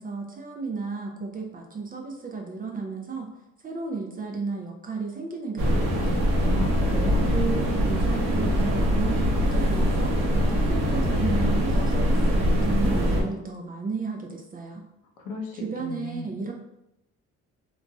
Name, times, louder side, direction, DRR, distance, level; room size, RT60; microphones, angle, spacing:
voice 1, 0.0-3.3 3.6-6.3 7.3-10.2 10.5-14.8 15.6-16.5, right 4 dB, 30° right, 1 dB, 0.4 m, -33 dB
sound 1, 5.6-13.2, equal, 75° right, 0.8 m, -23 dB
voice 2, 6.5-7.5 15.2-16.4, left 4 dB, 90° left, 2 dB, 0.6 m, -35 dB
2.9 x 2.5 x 2.3 m, 0.85 s
cardioid pair, 90°, 30 cm